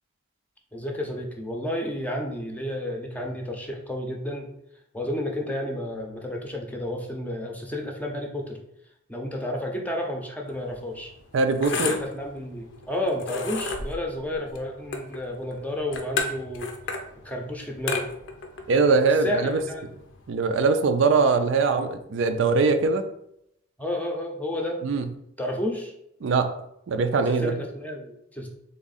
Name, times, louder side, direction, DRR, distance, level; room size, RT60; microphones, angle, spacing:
voice 1, 0.7-4.5 4.9-8.6 9.1-11.1 11.8-16.7 17.2-18.1 19.2-19.8 23.8-24.8 25.4-25.9 27.1-28.5, left 1 dB, 10° left, 1 dB, 0.6 m, -31 dB
sound 1, 10.5-20.3, left 4 dB, 60° left, 0.6 m, -34 dB
voice 2, 11.3-11.9 18.7-19.6 20.3-23.0 24.8-25.1 26.2-26.5 26.9-27.6, right 4 dB, 65° right, 7 dB, 0.4 m, -22 dB
3.6 x 3.6 x 4.1 m, 0.77 s
head